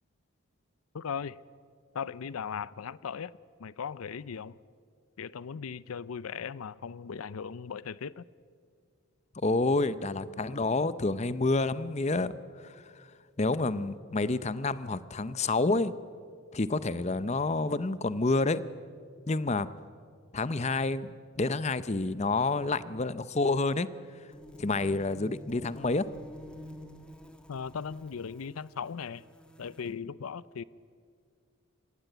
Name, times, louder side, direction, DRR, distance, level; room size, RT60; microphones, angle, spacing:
voice 1, 0.9-1.4 1.9-4.6 5.2-8.2 27.5-29.2 29.6-30.6, left 6 dB, 85° left, 20 dB, 0.5 m, -38 dB
voice 2, 9.4-12.4 12.6-13.1 13.4-15.9 16.5-18.6 19.3-19.7 20.3-23.9 24.6-26.1, left 3 dB, 30° left, 16 dB, 0.6 m, -28 dB
sound 1, 24.3-29.9, equal, 5° left, 1.4 m, -49 dB
27.0 x 16.0 x 9.1 m, 2.1 s
head